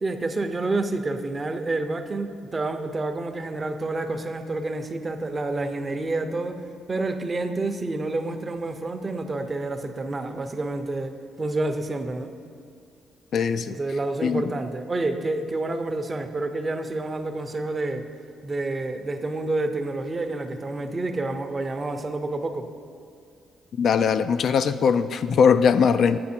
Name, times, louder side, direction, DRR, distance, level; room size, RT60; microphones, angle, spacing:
voice 1, 0.0-6.6 6.9-12.3 13.7-18.1 18.4-22.7, right 2 dB, 30° right, 8 dB, 0.6 m, -28 dB
voice 2, 13.3-13.8 14.2-14.4 23.8-26.2, left 6 dB, 60° left, 11 dB, 0.3 m, -20 dB
8.5 x 7.7 x 4.4 m, 2.4 s
cardioid pair, 90°, 0 cm